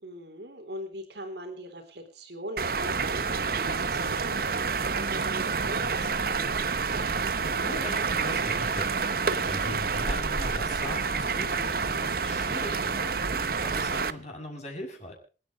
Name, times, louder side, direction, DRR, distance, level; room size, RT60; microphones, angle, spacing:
voice 1, 0.0-6.5, right 1 dB, 70° right, 6 dB, 3.9 m, -40 dB
sound 1, 2.6-14.1, right 5 dB, 55° right, 0.9 m, -28 dB
voice 2, 7.6-15.2, left 1 dB, 40° left, 1 dB, 6.3 m, -40 dB
27.0 x 9.5 x 3.8 m, 0.36 s
head